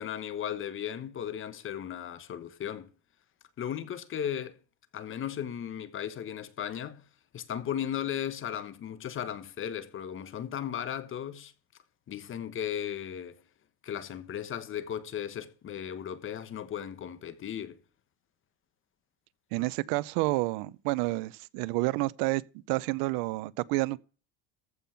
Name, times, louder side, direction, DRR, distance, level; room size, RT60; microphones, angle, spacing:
voice 1, 0.0-2.9 3.6-4.6 4.9-7.0 7.3-11.5 12.1-13.4 13.8-17.8, left 9 dB, 35° left, 1.2 m, -36 dB
voice 2, 19.5-22.4 22.7-24.0, right 21 dB, 80° right, 0.7 m, -29 dB
14.5 x 5.5 x 5.7 m
cardioid pair, 140°, 36 cm